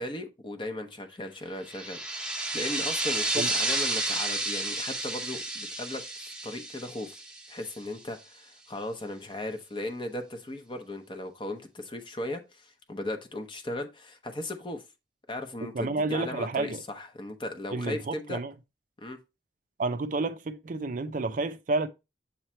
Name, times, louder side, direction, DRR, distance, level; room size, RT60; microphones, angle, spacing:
voice 1, 0.0-7.2 7.5-14.8 15.3-18.4 19.0-19.2, left 1 dB, 30° left, 0.8 m, -37 dB
sound 1, 1.6-8.0, right 2 dB, 5° right, 0.7 m, -31 dB
voice 2, 15.7-16.8 17.7-18.5 19.8-21.9, right 3 dB, 45° right, 0.4 m, -30 dB
7.3 x 3.1 x 4.3 m
head